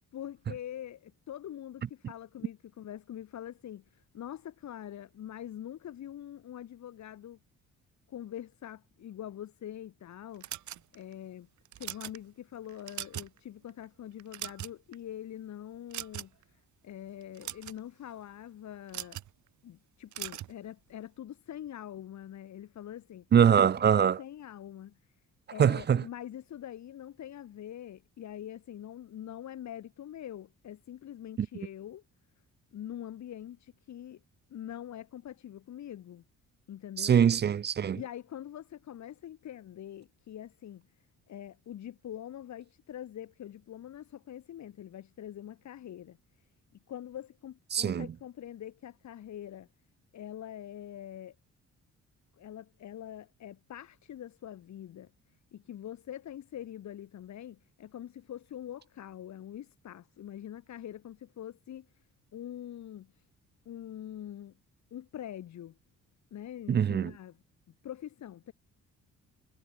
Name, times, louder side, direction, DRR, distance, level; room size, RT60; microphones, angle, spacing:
voice 1, 0.1-7.4 8.1-10.5 10.9-11.5 11.8-19.2 19.6-23.3 23.8-25.0 25.5-32.0 32.7-34.2 34.5-36.2 36.7-37.2 37.9-40.8 41.3-46.2 46.9-49.7 50.1-51.3 52.4-55.1 55.5-61.9 62.3-63.2 63.6-64.6 64.9-65.8 66.3-67.4 67.8-68.5, left 11 dB, 65° left, 2.8 m, -44 dB
sound 1, 10.4-11.1 11.6-12.2 12.7-13.4 13.7-13.8 14.2-14.9 15.9-16.4 17.2-17.8 18.9-19.3 20.1-20.5, right 13 dB, 75° right, 1.7 m, -40 dB
voice 2, 23.3-24.2 25.6-26.0 31.4-31.5 37.0-38.0 47.7-48.1 66.7-67.1, right 8 dB, 35° right, 0.6 m, -23 dB
cardioid pair, 90°, 30 cm